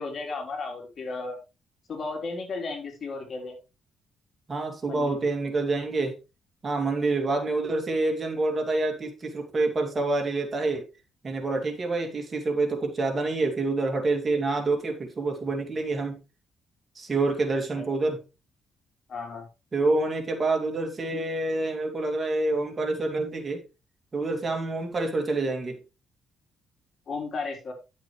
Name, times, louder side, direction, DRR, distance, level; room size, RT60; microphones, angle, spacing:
voice 1, 0.0-1.4 1.9-3.5 4.9-5.2 17.7-17.9 19.1-19.5 27.1-27.7, left 3 dB, 50° left, 3.8 m, -34 dB
voice 2, 4.5-6.2 6.6-10.9 11.2-16.2 17.0-18.2 19.7-23.6 24.1-25.8, right 3 dB, 35° right, 2.4 m, -27 dB
11.0 x 7.0 x 3.2 m
cardioid pair, 90°, 0 cm